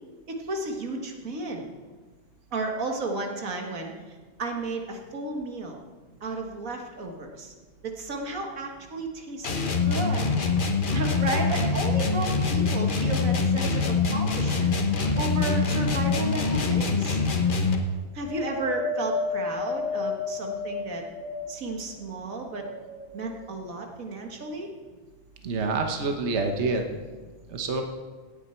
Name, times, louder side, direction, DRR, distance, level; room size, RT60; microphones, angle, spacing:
voice 1, 0.3-1.7 2.5-3.9 4.4-5.8 6.2-7.5 7.8-10.3 10.9-14.7 15.2-17.2 18.1-21.0 21.5-22.7 23.1-24.7, right 2 dB, 90° right, 2 dB, 1.9 m, -33 dB
sound 1, 9.4-17.9, left 4 dB, 40° left, 1.1 m, -24 dB
Wind, 18.2-21.8 22.4-23.4 24.2-24.3, left 3 dB, 25° left, 3.8 m, -32 dB
voice 2, 25.4-27.0 27.5-27.8, right 3 dB, 55° right, 4 dB, 1.3 m, -27 dB
17.5 x 9.2 x 4.4 m, 1.4 s
omnidirectional pair, 1.4 m